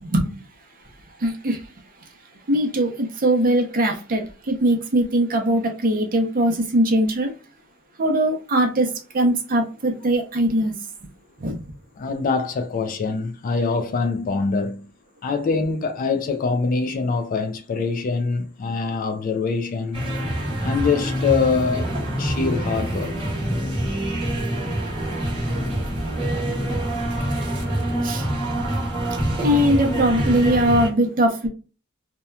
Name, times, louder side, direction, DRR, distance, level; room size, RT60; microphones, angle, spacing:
voice 1, 1.2-1.6 2.5-7.3 8.0-10.7 11.4-11.6 26.3-26.4 28.0-28.3 29.4-31.5, right 1 dB, 40° right, 0.6 m, -21 dB
voice 2, 12.0-14.9 15.2-20.1 20.6-21.9 22.2-23.3, left 4 dB, 40° left, 0.3 m, -24 dB
sound 1, 19.9-30.9, right 1 dB, 25° right, 0.9 m, -25 dB
2.8 x 2.2 x 2.2 m
head